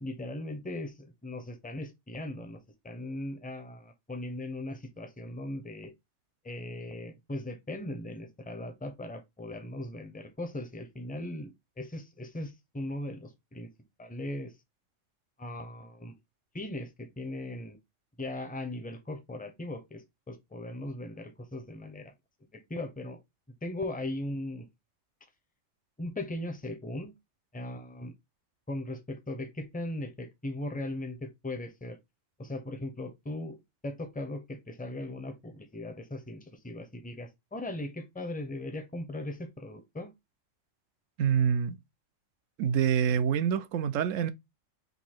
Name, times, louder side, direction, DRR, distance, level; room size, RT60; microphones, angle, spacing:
voice 1, 0.0-2.6 2.8-5.9 6.4-13.7 14.0-14.5 15.4-16.1 16.5-17.8 18.2-20.0 20.3-22.1 22.5-23.2 23.6-24.7 26.0-27.1 27.5-28.1 28.7-32.0 32.4-33.6 33.8-40.1, left 1 dB, 10° left, 0.5 m, -38 dB
voice 2, 41.2-41.8 42.6-44.3, right 8 dB, 85° right, 0.9 m, -26 dB
4.0 x 2.7 x 4.3 m
omnidirectional pair, 1.3 m